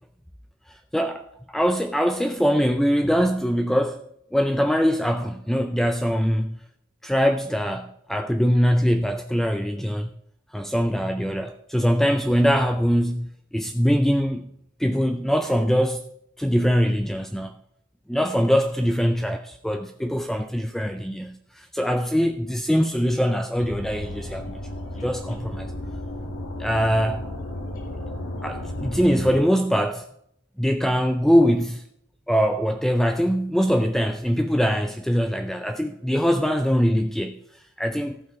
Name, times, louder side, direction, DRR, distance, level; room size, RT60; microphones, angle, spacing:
voice 1, 0.7-4.0 4.3-6.6 7.0-10.1 10.5-14.5 14.8-16.1 16.4-17.5 18.1-24.5 24.9-25.7 26.6-27.3 28.4-30.1 30.6-31.8 32.3-38.2, equal, ahead, 0.4 m, -22 dB
sound 1, 23.6-29.4, left 1 dB, 70° left, 2.3 m, -33 dB
14.5 x 5.8 x 5.1 m
head